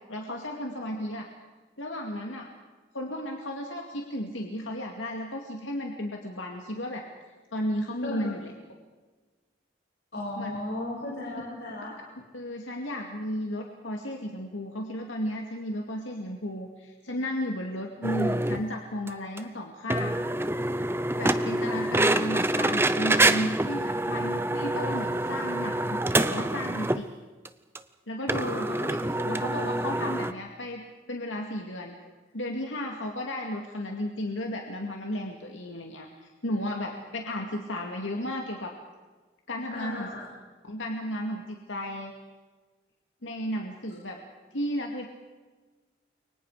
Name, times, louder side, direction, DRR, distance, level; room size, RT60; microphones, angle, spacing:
voice 1, 0.1-1.3 1.8-2.5 2.9-7.0 7.5-8.5 10.4-10.6 12.3-20.2 21.2-27.1 28.1-29.0 29.2-32.0 32.3-38.7 39.5-40.1 40.6-42.1 43.2-44.2 44.5-45.1, left 1 dB, 90° left, 1 dB, 2.3 m, -34 dB
voice 2, 10.1-12.0 28.3-28.9 29.3-29.6 39.7-40.3, left 2 dB, 60° left, -4 dB, 5.1 m, -36 dB
sound 1, 18.0-18.6 19.1-19.2 19.4-19.5 19.9-27.1 27.5-27.6 27.8-27.9 28.3-30.3, right 1 dB, 10° right, 0.7 m, -26 dB
29.0 x 24.0 x 5.0 m, 1.3 s
head